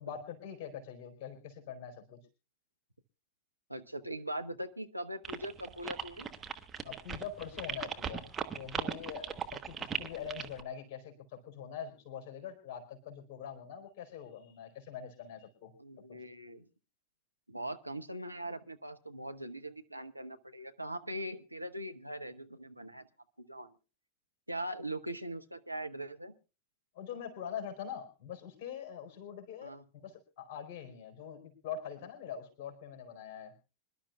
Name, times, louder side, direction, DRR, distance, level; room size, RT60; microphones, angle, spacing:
voice 1, 0.0-2.2 6.8-8.3 8.5-15.7 26.9-33.5, left 8 dB, 40° left, 4 dB, 4.5 m, -44 dB
voice 2, 3.7-6.3 15.8-16.6 17.5-23.0 23.4-23.7 24.5-26.3 29.6-29.8, right 1 dB, 85° right, 8 dB, 0.8 m, -41 dB
sound 1, 5.2-10.6, right 6 dB, 20° right, 1.2 m, -38 dB
26.0 x 11.5 x 2.4 m, 0.31 s
figure-of-eight pair, 90°, 0 cm